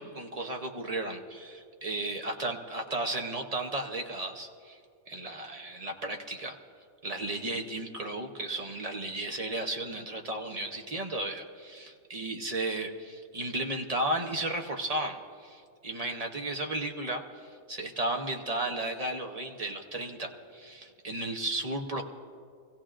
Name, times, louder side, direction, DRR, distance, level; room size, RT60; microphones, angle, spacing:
voice 1, 0.0-4.8 5.1-6.6 7.0-22.0, right 2 dB, 35° right, 3 dB, 0.8 m, -34 dB
25.0 x 16.0 x 2.5 m, 2.2 s
omnidirectional pair, 1.4 m